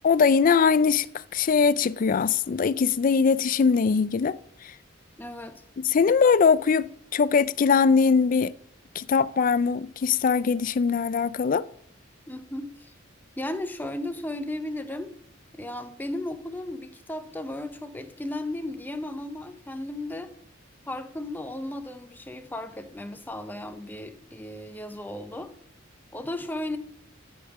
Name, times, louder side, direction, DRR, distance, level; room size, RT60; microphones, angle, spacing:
voice 1, 0.0-1.1 1.3-4.4 4.6-4.7 5.8-8.5 9.0-11.7, left 5 dB, 45° left, 0.3 m, -21 dB
voice 2, 5.2-5.6 12.3-12.9 13.4-15.1 15.5-20.3 20.9-25.5 26.1-26.8, left 1 dB, 10° left, 0.7 m, -35 dB
13.5 x 5.4 x 6.1 m
head